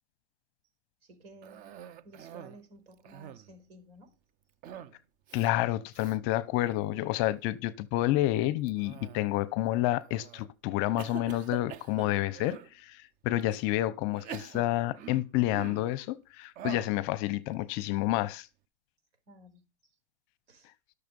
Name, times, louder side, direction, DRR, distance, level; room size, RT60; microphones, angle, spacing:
voice 1, 1.0-1.7 2.0-4.1 13.5-13.6 19.3-19.9 20.5-20.7, right 1 dB, 70° right, 4.4 m, -54 dB
Cough, 1.4-2.6 2.9-3.6 4.6-5.0 5.3-5.5 5.9-6.2 6.7-7.2 8.7-9.5 10.1-10.5 11.0-12.7 13.4-13.5 14.1-16.0 16.6-17.0, right 10 dB, 25° right, 0.5 m, -45 dB
voice 2, 5.3-18.5, left 15 dB, 35° left, 0.7 m, -29 dB
12.0 x 6.7 x 5.2 m
supercardioid pair, 145°, 33 cm